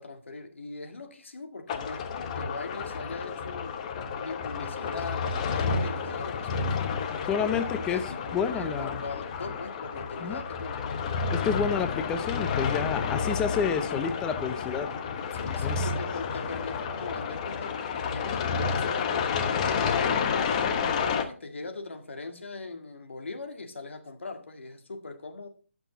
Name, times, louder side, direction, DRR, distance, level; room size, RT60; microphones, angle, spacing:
voice 1, 0.0-3.8 4.2-6.8 7.4-10.8 15.3-25.5, left 3 dB, 70° left, 1.8 m, -40 dB
sound 1, 1.7-21.2, left 5 dB, 35° left, 1.1 m, -30 dB
voice 2, 7.2-8.0 8.3-9.0 10.2-10.4 11.3-14.9 15.6-15.9, left 6 dB, 10° left, 0.6 m, -29 dB
12.0 x 6.1 x 3.8 m
figure-of-eight pair, 145°, 7 cm